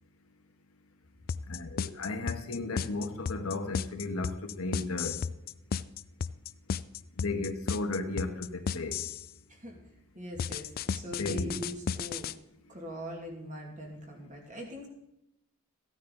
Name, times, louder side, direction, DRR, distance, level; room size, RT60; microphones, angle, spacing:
sound 1, 1.3-9.3 10.4-12.3, left 6 dB, 45° left, 0.3 m, -33 dB
voice 1, 1.5-5.2 7.2-9.0 11.0-11.5, left 2 dB, 90° left, 6 dB, 1.3 m, -34 dB
voice 2, 10.1-12.3 12.7-14.9, equal, 35° right, 1 dB, 2.3 m, -42 dB
14.0 x 9.6 x 3.9 m, 0.85 s
head